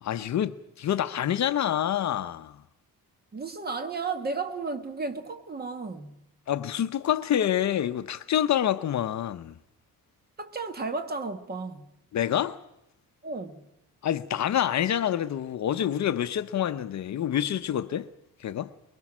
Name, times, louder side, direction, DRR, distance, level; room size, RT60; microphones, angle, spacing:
voice 1, 0.0-2.6 6.5-9.5 12.1-12.6 14.0-18.1 18.4-18.7, left 10 dB, 50° left, 0.7 m, -27 dB
voice 2, 3.3-6.1 10.4-11.9 13.2-13.6, right 4 dB, 25° right, 1.4 m, -33 dB
24.0 x 22.0 x 6.1 m
wide cardioid pair, 175°, 36 cm